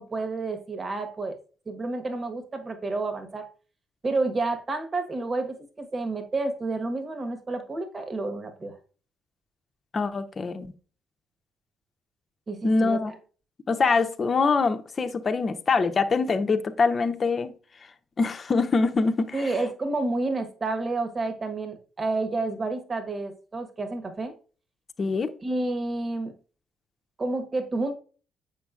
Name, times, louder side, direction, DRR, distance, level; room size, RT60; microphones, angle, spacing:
voice 1, 0.0-1.4 1.7-3.4 4.0-8.7 12.5-13.1 19.3-24.3 25.4-26.3 27.2-27.9, right 2 dB, 35° right, 1.3 m, -30 dB
voice 2, 9.9-10.7 12.6-13.1 13.7-17.5 18.2-19.5 25.0-25.3, left 4 dB, 40° left, 0.8 m, -24 dB
8.1 x 5.9 x 2.5 m
hypercardioid pair, 45°, 0 cm